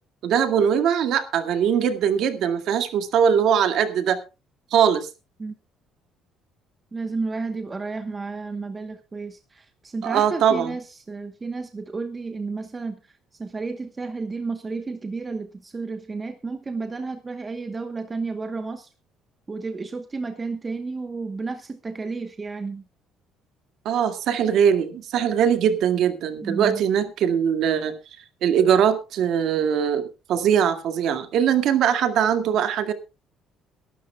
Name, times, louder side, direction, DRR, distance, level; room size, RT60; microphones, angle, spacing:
voice 1, 0.2-4.2 4.7-5.1 10.0-10.7 23.9-27.9 28.4-32.9, right 8 dB, 60° right, 8 dB, 2.0 m, -21 dB
voice 2, 6.9-18.9 19.5-22.8 26.4-26.8, right 4 dB, 20° right, 7 dB, 1.1 m, -32 dB
23.5 x 12.5 x 2.3 m, 0.29 s
cardioid pair, 145°, 0 cm